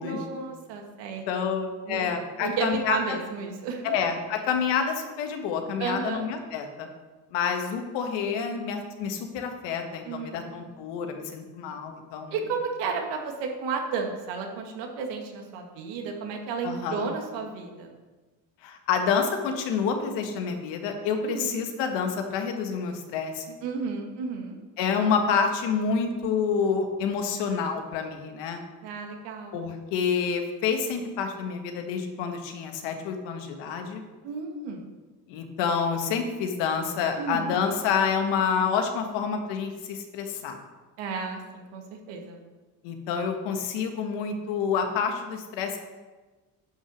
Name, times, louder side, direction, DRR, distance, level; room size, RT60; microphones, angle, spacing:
voice 1, 0.0-1.5 1.9-2.1 2.4-3.9 5.8-6.3 10.1-10.7 12.3-17.9 21.2-21.6 23.6-24.6 28.8-29.6 34.2-34.9 37.2-37.6 41.0-42.4, right 5 dB, 85° right, 3 dB, 1.9 m, -33 dB
voice 2, 1.3-3.2 3.8-6.9 7.3-12.4 16.6-17.1 18.6-23.5 24.8-28.6 29.5-34.0 35.3-40.6 42.8-45.8, left 6 dB, 85° left, 5 dB, 1.5 m, -28 dB
9.4 x 6.0 x 6.3 m, 1.3 s
cardioid pair, 100°, 42 cm